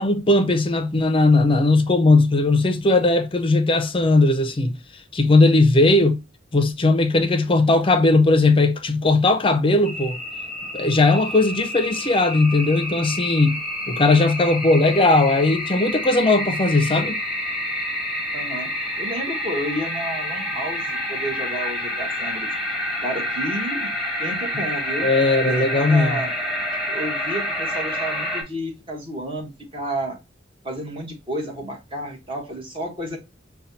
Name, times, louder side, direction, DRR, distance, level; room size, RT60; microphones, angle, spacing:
voice 1, 0.0-4.8 5.1-6.2 6.5-10.2 10.7-13.6 13.9-17.2 25.0-26.2, left 2 dB, 30° left, 0.6 m, -18 dB
sound 1, 9.8-28.4, left 1 dB, 5° right, 1.2 m, -28 dB
voice 2, 18.3-18.7 19.0-22.5 23.0-23.9 24.2-25.1 25.4-26.3 26.9-30.2 30.6-33.2, right 1 dB, 30° right, 1.3 m, -31 dB
5.6 x 2.3 x 2.6 m
head